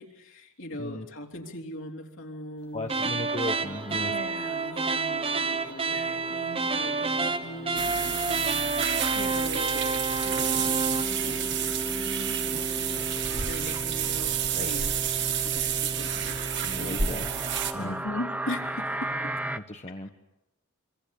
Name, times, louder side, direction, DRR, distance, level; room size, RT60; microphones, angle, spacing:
voice 1, 0.0-3.1 3.9-15.0 15.3-16.3 16.7-17.0 17.8-19.3, left 1 dB, 60° left, 2 dB, 3.6 m, -40 dB
voice 2, 2.7-4.1 14.5-14.7 16.6-17.3 17.7-17.9 19.6-20.1, left 1 dB, 30° left, 4 dB, 1.3 m, -36 dB
sound 1, 2.9-11.1, right 3 dB, 25° right, 1.2 m, -29 dB
sound 2, 3.3-19.6, right 1 dB, 5° right, 1.0 m, -37 dB
sound 3, 7.8-17.7, right 8 dB, 55° right, 2.3 m, -30 dB
26.5 x 26.0 x 8.6 m, 0.90 s
head